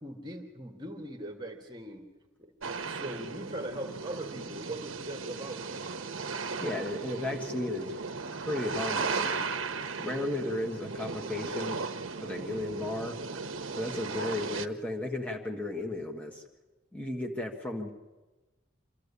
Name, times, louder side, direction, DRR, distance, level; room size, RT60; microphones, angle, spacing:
voice 1, 0.0-2.0 2.4-2.5 2.8-5.9, right 1 dB, 20° right, 3 dB, 1.7 m, -40 dB
sound 1, 2.6-14.7, right 4 dB, 80° right, 0.9 m, -36 dB
voice 2, 6.6-7.9 8.4-9.5 10.0-11.8 12.2-13.2 13.7-16.4 16.9-17.9, left 2 dB, 5° left, 1 dB, 1.6 m, -34 dB
26.0 x 13.5 x 8.4 m, 1.2 s
head